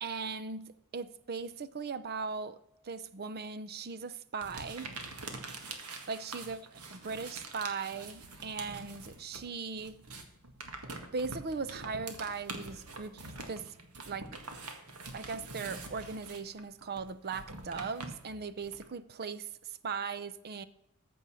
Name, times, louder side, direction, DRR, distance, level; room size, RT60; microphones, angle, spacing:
voice 1, 0.0-2.6 2.8-4.9 6.1-6.6 6.9-10.0 11.1-13.7 14.1-14.3 15.1-19.5 19.8-20.6, right 5 dB, 45° right, 0.6 m, -38 dB
sound 1, 4.4-9.5 9.7-18.8, right 3 dB, 75° right, 1.8 m, -45 dB
14.0 x 5.4 x 6.2 m
head